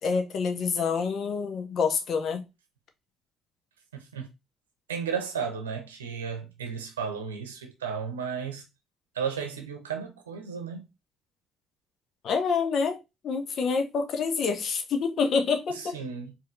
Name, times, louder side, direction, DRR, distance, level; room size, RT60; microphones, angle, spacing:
voice 1, 0.0-2.4 12.2-13.0 13.2-16.0, left 5 dB, 50° left, 0.9 m, -27 dB
voice 2, 4.9-8.6 9.1-10.9 15.7-16.3, right 6 dB, 80° right, 0.8 m, -34 dB
4.7 x 2.9 x 3.1 m
figure-of-eight pair, 45°, 0 cm